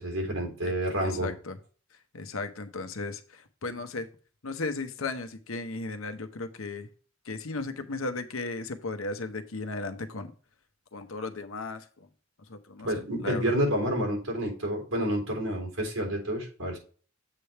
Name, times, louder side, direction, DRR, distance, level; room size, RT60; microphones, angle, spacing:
voice 1, 0.0-1.3 12.8-16.8, right 1 dB, 85° right, 3.7 m, -29 dB
voice 2, 1.0-1.6 2.1-4.1 4.4-6.9 7.3-10.3 10.9-12.1 12.5-13.5, left 3 dB, 75° left, 0.9 m, -36 dB
7.6 x 3.4 x 5.6 m
head